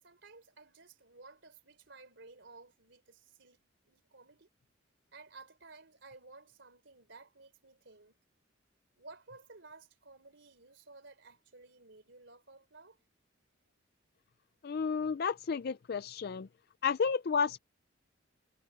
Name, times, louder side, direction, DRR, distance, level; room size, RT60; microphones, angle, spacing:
voice 1, 0.0-3.6 3.9-4.5 5.1-8.2 9.0-13.0, right 3 dB, 65° right, 3.8 m, -55 dB
voice 2, 14.6-16.5 16.8-17.6, left 6 dB, 50° left, 0.4 m, -31 dB
head